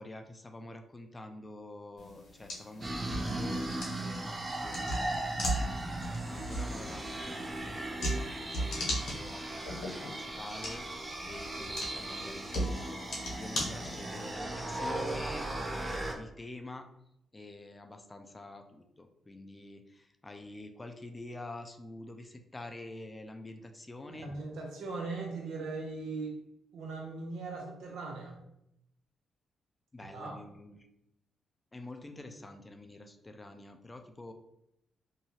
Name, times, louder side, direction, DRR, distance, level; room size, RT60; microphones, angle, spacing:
voice 1, 0.0-16.9 17.3-24.3 29.9-30.9 31.7-34.3, left 2 dB, 25° left, 6 dB, 0.4 m, -47 dB
sound 1, 2.0-14.3, equal, 75° left, 1.1 m, -38 dB
sound 2, 2.8-16.1, right 1 dB, 30° right, 0.6 m, -37 dB
Mallet percussion, 12.6-14.7, left 8 dB, 55° right, 1.0 m, -58 dB
voice 2, 24.1-26.4 26.7-28.4 30.0-30.4, right 3 dB, 85° right, -1 dB, 0.7 m, -39 dB
2.7 x 2.3 x 3.0 m, 0.80 s
supercardioid pair, 55°, 0 cm